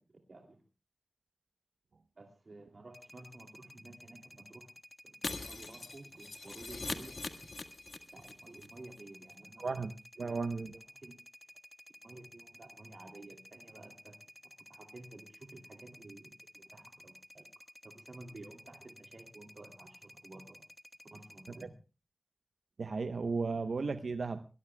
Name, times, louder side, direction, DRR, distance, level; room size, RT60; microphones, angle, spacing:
voice 1, 0.3-0.6 2.2-4.7 5.0-5.1 5.4-7.3 8.1-9.7 10.2-10.4 11.0-11.1 12.0-14.2 14.7-17.5 17.8-20.6 21.1-21.7, right 2 dB, 60° right, 3 dB, 2.7 m, -53 dB
sound 1, 2.9-21.6, left 1 dB, 10° left, 1.3 m, -55 dB
Shatter, 5.2-8.3 8.6-8.7 9.0-9.1, left 3 dB, 70° left, 1.6 m, -41 dB
voice 2, 9.6-10.8 22.8-24.5, right 4 dB, 80° right, 10 dB, 0.8 m, -35 dB
22.0 x 19.5 x 2.3 m, 0.33 s
wide cardioid pair, 80°, 0 cm